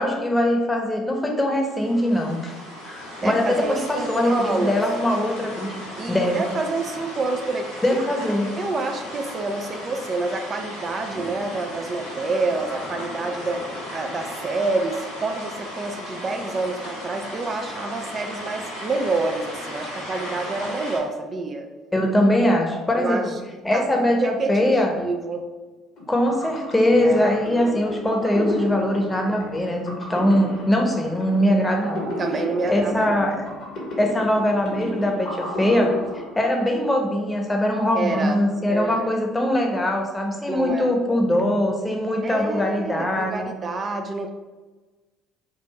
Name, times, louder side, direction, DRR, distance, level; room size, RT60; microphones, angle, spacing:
voice 1, 0.0-2.5 2.8-5.7 6.1-6.4 7.8-8.5 21.9-23.2 23.6-24.9 26.1-32.1 32.7-33.4 34.0-43.5, left 1 dB, 15° left, 2 dB, 0.9 m, -22 dB
sound 1, 1.5-21.0, equal, 85° left, 1.4 m, -36 dB
voice 2, 3.2-4.8 6.0-7.8 8.6-13.6 13.9-21.7 23.0-23.4 23.7-23.8 24.2-24.5 25.0-25.4 27.0-27.3 32.2-33.2 37.9-38.4 38.7-39.1 40.5-41.0 42.2-44.3, right 3 dB, 40° right, 5 dB, 0.4 m, -28 dB
sound 2, 26.0-36.8, left 1 dB, 60° left, 1.2 m, -34 dB
3.8 x 2.4 x 4.1 m, 1.3 s
hypercardioid pair, 55°, 0 cm